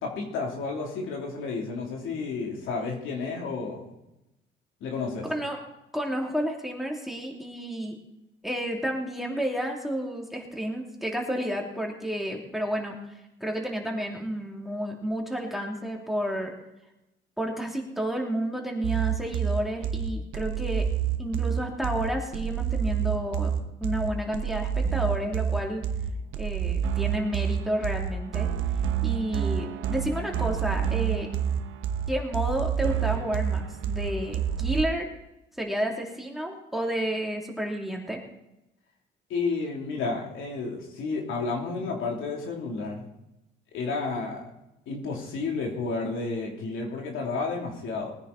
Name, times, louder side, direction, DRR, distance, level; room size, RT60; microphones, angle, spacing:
voice 1, 0.0-3.9 4.8-5.3 39.3-43.0 43.7-44.4 44.9-48.1, left 4 dB, 85° left, 0 dB, 3.3 m, -31 dB
voice 2, 5.9-8.0 8.4-13.0 13.4-16.5 17.4-20.9 21.2-23.5 23.8-25.9 26.4-28.5 29.0-31.3 32.1-35.1 35.6-38.2, equal, ahead, 0 dB, 3.0 m, -31 dB
sound 1, 18.8-34.8, right 8 dB, 90° right, 1.0 m, -28 dB
20.0 x 9.9 x 4.2 m, 0.90 s
cardioid pair, 90°, 20 cm